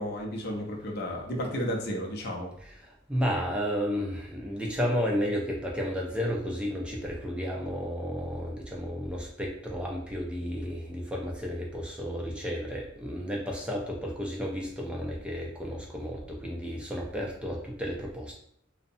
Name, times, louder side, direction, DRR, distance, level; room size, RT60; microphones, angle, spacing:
voice 1, 0.0-2.5, equal, 55° left, 1 dB, 0.5 m, -33 dB
voice 2, 2.6-18.3, equal, 5° right, -2 dB, 0.3 m, -32 dB
2.6 x 2.0 x 2.5 m, 0.70 s
head